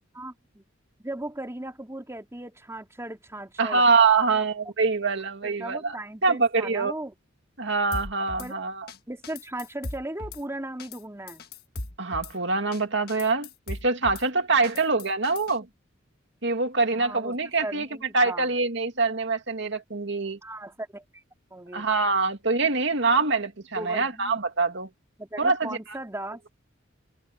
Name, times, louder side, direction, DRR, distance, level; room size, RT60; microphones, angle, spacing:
voice 1, 0.1-0.6 1.0-3.8 5.4-7.1 8.4-8.6 9.1-11.5 14.6-14.8 16.9-17.3 17.6-18.5 20.4-21.2 21.5-21.9 23.1-23.2 23.7-24.3 25.2-26.5, right 1 dB, 15° right, 3.0 m, -37 dB
voice 2, 3.6-6.0 6.2-6.9 7.6-8.9 12.0-15.7 16.4-17.9 18.1-20.4 21.7-24.9 25.4-25.8, right 4 dB, 65° right, 2.4 m, -24 dB
Drum kit / Snare drum, 7.9-8.5 8.9-9.0 9.2-10.4 10.8-11.0 11.3-12.3 12.7-12.8 13.1-14.3 14.6-15.6, left 2 dB, 50° left, 1.6 m, -38 dB
head